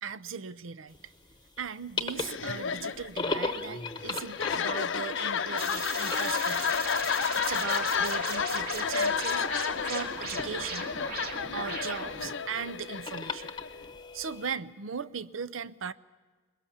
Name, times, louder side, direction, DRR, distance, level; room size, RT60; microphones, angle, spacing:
voice 1, 0.0-1.1 1.6-9.5 9.8-10.9 11.5-13.5 14.1-15.9, right 6 dB, 80° right, 15 dB, 0.6 m, -38 dB
sound 1, 0.9-14.5, left 3 dB, 25° left, 0.9 m, -39 dB
sound 2, 2.1-13.8, left 6 dB, 70° left, 0.6 m, -32 dB
sound 3, 5.6-12.3, right 3 dB, 50° right, 2.5 m, -38 dB
22.0 x 21.5 x 7.2 m, 1.4 s
head